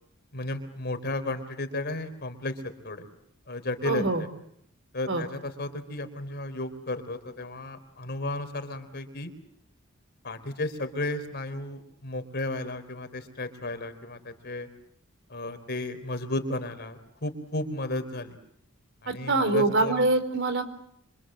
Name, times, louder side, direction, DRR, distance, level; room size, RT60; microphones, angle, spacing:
voice 1, 0.3-3.1 3.5-4.3 4.9-9.3 10.2-14.7 15.3-18.4 19.0-20.1, left 2 dB, 50° left, 9 dB, 4.1 m, -34 dB
voice 2, 3.8-4.2 5.1-5.2 19.1-20.6, right 2 dB, 60° right, 10 dB, 4.2 m, -24 dB
26.5 x 26.0 x 7.7 m, 0.71 s
head